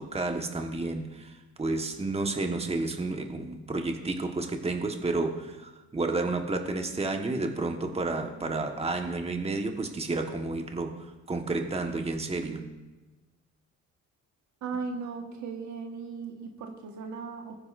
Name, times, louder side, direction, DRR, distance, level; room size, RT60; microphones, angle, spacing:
voice 1, 0.0-12.7, right 3 dB, 20° right, 4 dB, 1.3 m, -31 dB
voice 2, 14.6-17.5, right 5 dB, 70° right, 4 dB, 1.5 m, -37 dB
20.0 x 9.5 x 2.5 m, 1.1 s
cardioid pair, 90°, 30 cm